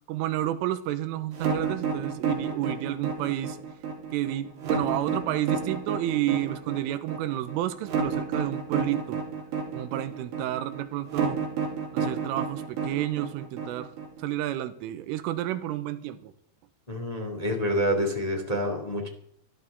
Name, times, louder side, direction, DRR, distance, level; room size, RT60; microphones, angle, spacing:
voice 1, 0.1-3.6 4.1-9.2 9.7-11.4 11.9-13.9 14.2-16.3, right 13 dB, 85° right, 12 dB, 3.5 m, -30 dB
sound 1, 1.3-14.2, right 6 dB, 55° right, 5.0 m, -30 dB
voice 2, 16.9-19.1, equal, 35° left, 3 dB, 0.6 m, -27 dB
25.5 x 14.0 x 3.6 m, 0.65 s
omnidirectional pair, 5.8 m